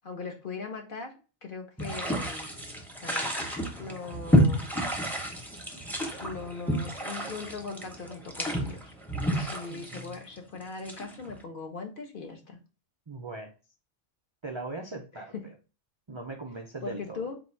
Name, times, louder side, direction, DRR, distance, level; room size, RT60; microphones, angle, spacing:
voice 1, 0.0-1.1 1.4-2.5 2.9-3.3 3.8-4.7 6.2-8.9 9.3-12.6 15.1-15.5 16.8-17.3, left 4 dB, 50° left, 3 dB, 1.0 m, -40 dB
sound 1, 1.8-11.3, equal, ahead, 0.6 m, -30 dB
voice 2, 9.7-10.2 13.1-13.5 14.4-15.3 16.1-17.2, right 3 dB, 45° right, 3 dB, 0.3 m, -39 dB
4.0 x 2.5 x 4.4 m, 0.34 s
omnidirectional pair, 1.2 m